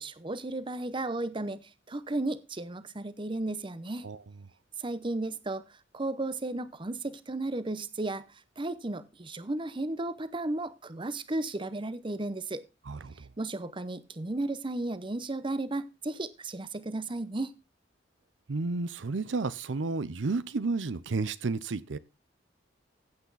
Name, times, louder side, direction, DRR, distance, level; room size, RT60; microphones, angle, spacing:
voice 1, 0.0-4.1 4.8-8.3 8.6-12.6 13.4-17.5, right 2 dB, 25° right, 0.8 m, -34 dB
voice 2, 18.5-22.0, right 3 dB, 75° right, 0.6 m, -31 dB
15.0 x 8.3 x 4.0 m
head